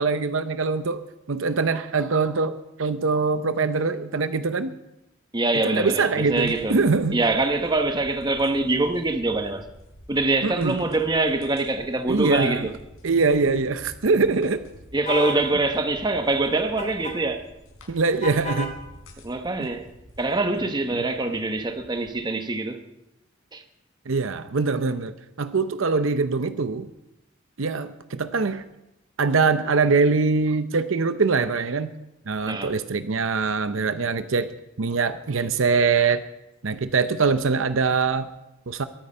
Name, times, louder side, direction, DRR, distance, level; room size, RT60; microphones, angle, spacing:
voice 1, 0.0-2.5 2.8-4.7 5.6-7.2 10.4-10.8 12.1-12.7 13.0-14.6 17.9-18.8 19.6-19.7 24.1-26.9 27.6-28.6 29.2-31.9 32.3-34.5 34.8-36.2 36.6-38.3 38.7-38.8, right 4 dB, 70° right, 0.7 m, -23 dB
voice 2, 5.3-6.8 7.1-9.7 10.1-12.7 14.9-17.4 19.2-19.9 20.2-22.8 23.5-23.6 32.5-32.7, right 2 dB, 20° right, 1.1 m, -24 dB
sound 1, 6.2-22.1, left 1 dB, 85° left, 5.0 m, -49 dB
sound 2, 15.1-15.4 16.8-17.2 18.2-18.8, left 1 dB, 35° left, 2.8 m, -31 dB
22.0 x 9.4 x 5.5 m
head